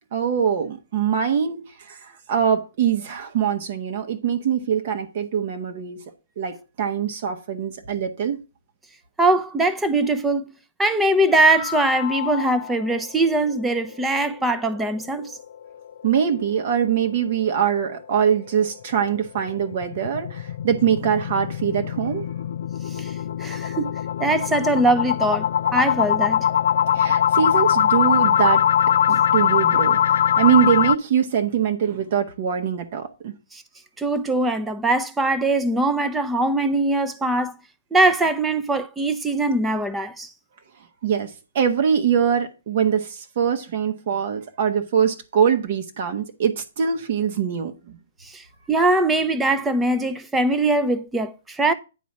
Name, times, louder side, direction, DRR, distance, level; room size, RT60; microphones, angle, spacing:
voice 1, 0.1-6.0 6.4-8.4 16.0-22.3 26.9-28.7 29.3-33.3 41.0-48.0, right 8 dB, 50° right, 1.2 m, -23 dB
voice 2, 9.2-10.5 10.8-15.4 22.9-23.1 23.4-23.9 24.2-26.5 33.5-33.6 34.0-37.5 37.9-40.3 48.2-51.7, right 2 dB, 10° right, 0.7 m, -21 dB
sound 1, 11.3-12.8 13.2-13.3 13.7-13.8 14.2-14.3 19.1-31.0, left 9 dB, 60° left, 0.4 m, -22 dB
9.3 x 4.1 x 5.9 m
figure-of-eight pair, 130°, 0 cm